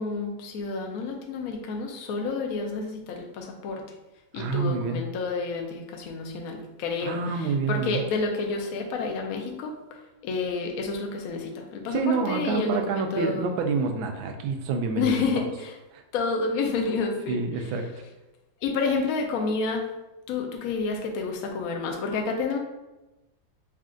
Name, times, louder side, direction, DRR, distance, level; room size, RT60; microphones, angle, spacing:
voice 1, 0.0-3.8 4.3-13.5 15.0-15.8 16.1-17.4 18.6-19.8 20.3-22.6, left 4 dB, 65° left, 2 dB, 0.9 m, -29 dB
voice 2, 4.3-5.0 7.0-8.0 11.9-15.4 15.9-16.0 17.3-17.9, right 5 dB, 85° right, 4 dB, 1.4 m, -27 dB
4.3 x 2.4 x 3.7 m, 1.0 s
omnidirectional pair, 2.1 m